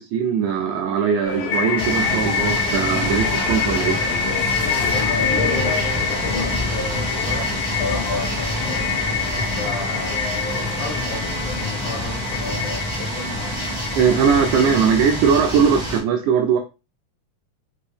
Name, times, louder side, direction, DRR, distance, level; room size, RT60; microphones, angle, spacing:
voice 1, 0.0-4.0 14.0-16.6, right 6 dB, 80° right, 1.8 m, -20 dB
sound 1, 1.0-15.3, left 6 dB, 55° left, 2.2 m, -27 dB
sound 2, 1.2-12.8, left 5 dB, 90° left, 1.3 m, -30 dB
sound 3, 1.8-16.0, equal, 10° left, 0.4 m, -27 dB
voice 2, 4.7-8.9 9.6-13.6, left 4 dB, 75° left, 2.2 m, -34 dB
5.3 x 2.6 x 3.3 m
omnidirectional pair, 3.9 m